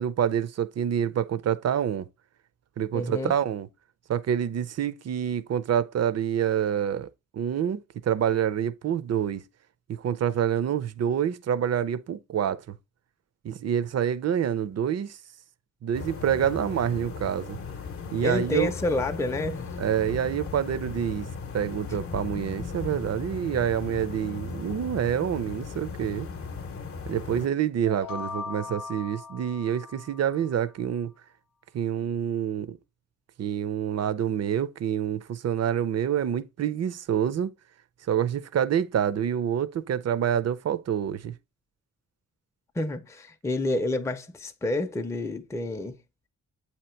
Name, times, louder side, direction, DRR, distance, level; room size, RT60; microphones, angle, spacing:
voice 1, 0.0-2.1 2.8-3.7 4.1-9.4 9.9-12.8 13.4-15.2 15.8-17.6 18.1-18.7 19.8-21.3 21.5-26.3 27.1-31.1 31.7-32.8 33.4-37.5 38.1-41.3, right 9 dB, 50° right, 0.5 m, -27 dB
voice 2, 2.9-3.3 18.2-19.8 42.8-46.0, left 2 dB, 10° left, 0.5 m, -29 dB
sound 1, 15.9-27.5, left 5 dB, 45° left, 0.7 m, -37 dB
sound 2, 27.8-30.6, left 5 dB, 90° left, 0.8 m, -39 dB
8.2 x 2.9 x 4.4 m
wide cardioid pair, 165°, 32 cm